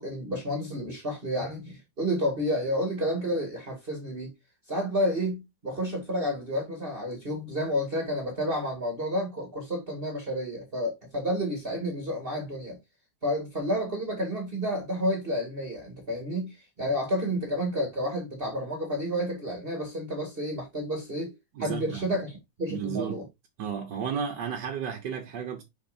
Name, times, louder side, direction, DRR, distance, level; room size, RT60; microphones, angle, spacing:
voice 1, 0.0-4.3 4.7-12.8 13.2-21.3 21.6-23.2, equal, 30° right, 2.1 m, -30 dB
voice 2, 21.5-22.1 22.7-23.2 23.6-25.6, right 7 dB, 65° right, 1.6 m, -33 dB
6.9 x 5.3 x 2.6 m
omnidirectional pair, 2.1 m